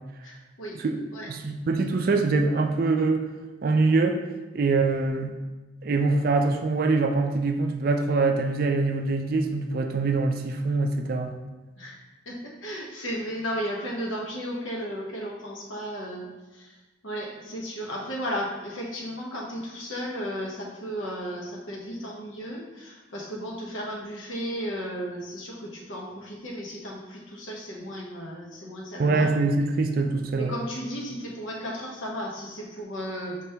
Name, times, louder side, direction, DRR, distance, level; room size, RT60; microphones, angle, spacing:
voice 1, 0.2-0.8 1.1-1.3 11.8-12.0 12.2-16.8 17.0-29.3 30.3-33.4, equal, 80° left, -2 dB, 1.0 m, -34 dB
voice 2, 1.3-3.2 3.6-4.2 4.5-5.3 5.8-11.3 29.0-30.5, right 3 dB, 45° right, 5 dB, 0.3 m, -24 dB
5.1 x 2.8 x 3.3 m, 1.2 s
head